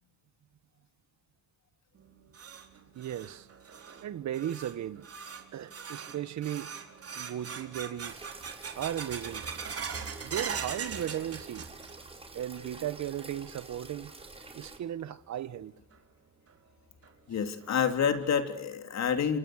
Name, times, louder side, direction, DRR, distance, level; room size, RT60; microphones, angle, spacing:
sound 1, 2.0-12.1 12.4-13.0 13.4-13.5 14.2-14.3 15.9-16.0 16.5-16.6 17.0-17.1 17.6-17.7 18.2-18.6, right 6 dB, 50° right, 4.3 m, -41 dB
voice 1, 2.9-3.5 4.0-5.0 5.5-6.7 7.1-8.2 8.7-9.5 10.2-11.6 12.3-14.1 14.5-15.7, right 11 dB, 65° right, 1.4 m, -36 dB
sound 2, 8.1-14.8, right 3 dB, 20° right, 5.4 m, -48 dB
voice 2, 17.3-19.4, left 7 dB, 60° left, 3.6 m, -28 dB
28.0 x 27.0 x 6.5 m
cardioid pair, 90°, 30 cm